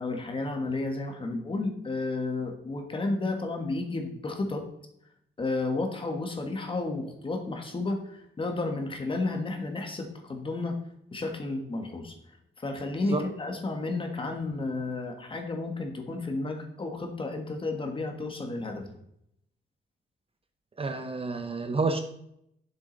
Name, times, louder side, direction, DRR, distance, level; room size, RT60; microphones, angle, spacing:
voice 1, 0.0-4.7 5.4-10.8 11.1-12.1 12.6-19.0, left 2 dB, 25° left, 4 dB, 1.4 m, -32 dB
voice 2, 20.8-22.0, right 3 dB, 30° right, 7 dB, 0.7 m, -29 dB
9.7 x 7.5 x 4.0 m, 0.75 s
wide cardioid pair, 175°, 19 cm